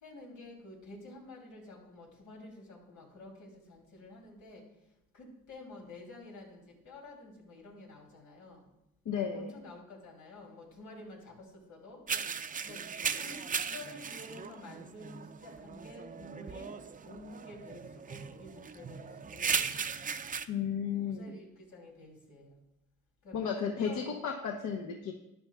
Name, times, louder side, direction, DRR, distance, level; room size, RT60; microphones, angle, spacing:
voice 1, 0.0-4.6 5.1-8.6 9.3-12.0 12.6-13.4 13.7-16.7 17.0-19.6 21.0-22.6 23.2-24.1, left 2 dB, 85° left, -2 dB, 3.2 m, -50 dB
voice 2, 9.0-9.5 20.5-21.3 23.3-25.1, left 7 dB, 70° left, 2 dB, 1.0 m, -34 dB
sound 1, 12.1-20.4, right 6 dB, 25° right, 0.5 m, -37 dB
12.5 x 10.0 x 2.4 m, 0.89 s
cardioid pair, 90°, 30 cm